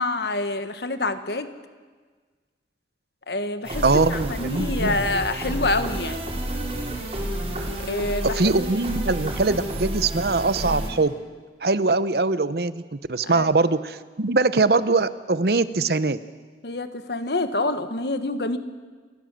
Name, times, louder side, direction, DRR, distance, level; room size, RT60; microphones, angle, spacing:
voice 1, 0.0-1.5 3.3-3.8 4.1-6.3 7.8-8.4 13.2-13.5 16.6-18.6, left 2 dB, 65° left, 10 dB, 1.4 m, -27 dB
sound 1, 3.6-10.9, right 1 dB, 35° right, 4.6 m, -30 dB
voice 2, 3.8-5.0 8.2-11.2 11.6-16.2, right 3 dB, 60° right, 14 dB, 0.8 m, -22 dB
28.0 x 15.5 x 7.5 m, 1.5 s
head